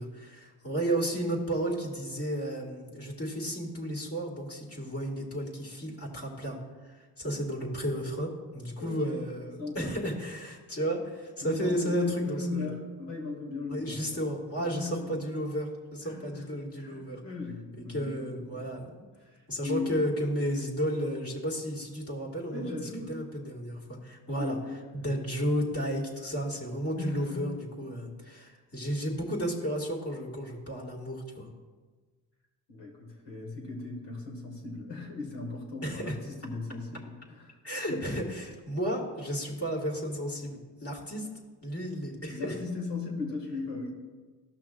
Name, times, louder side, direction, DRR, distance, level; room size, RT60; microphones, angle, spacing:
voice 1, 0.0-6.6 6.8-12.7 13.7-17.2 17.8-19.1 19.5-24.6 24.9-31.5 35.8-36.2 37.6-41.3 41.6-42.6, equal, 30° left, -2 dB, 2.3 m, -33 dB
voice 2, 8.8-9.2 9.6-9.9 11.4-14.2 14.6-15.2 16.0-16.5 16.8-18.7 19.2-19.9 22.5-23.1 24.4-24.7 27.0-27.5 32.7-38.0 42.3-43.9, left 3 dB, 75° left, 0 dB, 2.2 m, -37 dB
14.5 x 6.0 x 2.5 m, 1.4 s
supercardioid pair, 60°, 43 cm